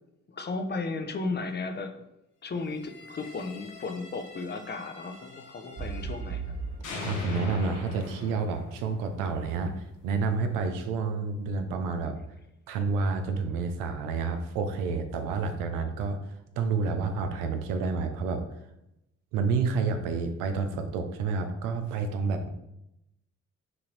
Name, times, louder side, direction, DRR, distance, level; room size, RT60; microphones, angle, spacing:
voice 1, 0.3-2.0 2.4-6.4, left 3 dB, 35° left, 7 dB, 0.6 m, -34 dB
sound 1, 2.7-6.5 6.8-9.9, left 2 dB, 85° left, 1.1 m, -41 dB
sound 2, 5.8-9.6 10.2-10.3, right 5 dB, 30° right, 0.4 m, -38 dB
voice 2, 7.0-12.2 12.7-16.2 16.6-18.4 19.3-22.5, right 4 dB, 90° right, 7 dB, 0.6 m, -29 dB
5.9 x 2.6 x 3.2 m, 0.86 s
supercardioid pair, 65°, 31 cm